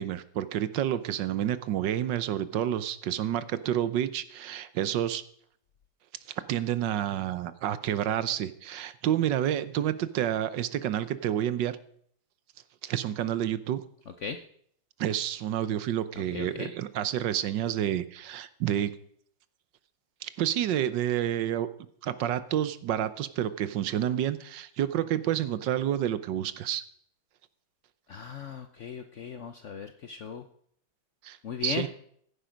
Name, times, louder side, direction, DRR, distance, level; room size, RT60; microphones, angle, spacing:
voice 1, 0.0-5.2 6.5-11.8 12.8-13.8 15.0-18.9 20.2-21.7 22.0-26.8 31.2-31.4 31.6-31.9, right 11 dB, 75° right, 14 dB, 1.4 m, -29 dB
voice 2, 16.3-16.7 28.1-30.4 31.4-31.9, left 6 dB, 60° left, 9 dB, 0.8 m, -37 dB
15.5 x 10.5 x 5.1 m, 0.64 s
omnidirectional pair, 2.0 m